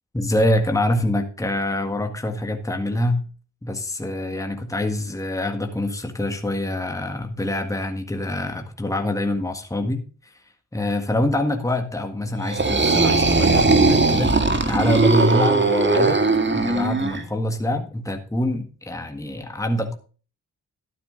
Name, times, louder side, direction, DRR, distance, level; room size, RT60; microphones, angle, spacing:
voice 1, 0.1-3.3 3.6-10.0 10.7-14.3 14.7-16.2 16.5-20.0, left 1 dB, 10° left, 5 dB, 1.8 m, -25 dB
sound 1, 12.4-17.2, right 3 dB, 25° right, 1.9 m, -19 dB
12.5 x 8.6 x 3.9 m, 0.37 s
hypercardioid pair, 40°, 42 cm